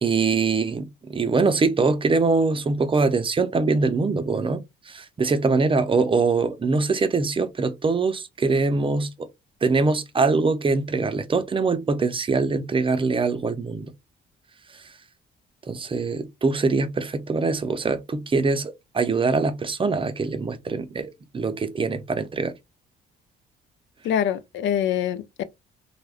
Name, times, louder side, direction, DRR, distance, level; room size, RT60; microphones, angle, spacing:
voice 1, 0.0-9.3 9.6-13.9 15.7-22.5, right 4 dB, 25° right, 0.5 m, -23 dB
voice 2, 24.0-25.4, left 9 dB, 70° left, 0.4 m, -24 dB
3.3 x 2.2 x 2.3 m
cardioid pair, 90°, 20 cm